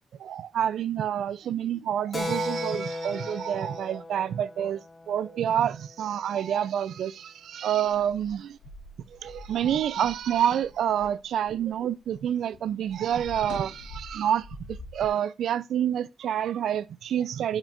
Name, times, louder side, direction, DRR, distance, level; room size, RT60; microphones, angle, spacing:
voice 1, 0.2-4.8 5.1-8.6 9.2-17.6, right 10 dB, 85° right, 0.4 m, -28 dB
Keyboard (musical), 2.1-6.2, left 2 dB, 25° left, 0.5 m, -36 dB
sound 1, 7.9-12.3 12.5-15.1, left 2 dB, 85° left, 1.3 m, -45 dB
8.7 x 5.1 x 2.5 m
cardioid pair, 120°, 0 cm